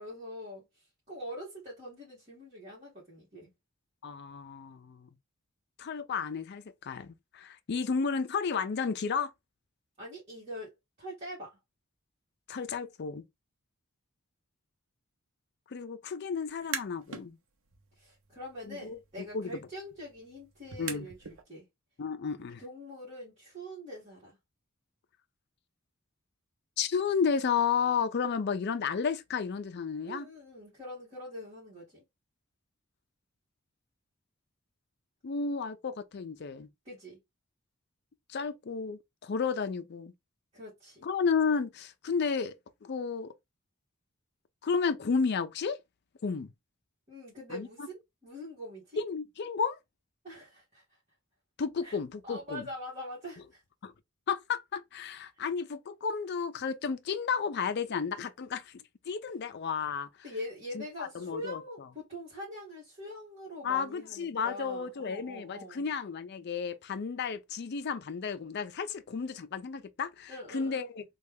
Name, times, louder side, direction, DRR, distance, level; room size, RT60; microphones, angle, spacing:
voice 1, 0.0-3.5 10.0-11.6 17.9-21.7 22.6-24.4 30.0-32.0 36.8-37.2 40.5-41.1 47.1-49.0 50.2-51.0 51.8-52.0 52.2-53.6 55.3-55.5 60.2-65.9 70.3-70.9, left 1 dB, 30° right, 1.5 m, -44 dB
voice 2, 4.0-5.1 5.8-9.3 12.5-13.3 15.7-17.4 18.6-19.0 19.3-19.5 20.8-21.1 22.0-22.6 26.8-30.3 35.2-36.7 38.3-40.1 41.0-42.6 42.8-43.3 44.6-45.8 46.2-46.5 47.5-47.7 49.0-49.8 51.6-52.7 53.8-53.9 54.3-60.1 60.7-61.6 63.6-71.0, left 5 dB, 55° left, 0.4 m, -32 dB
sound 1, 16.4-17.3 17.7-21.4, right 6 dB, 80° right, 0.8 m, -43 dB
3.2 x 2.3 x 3.4 m
head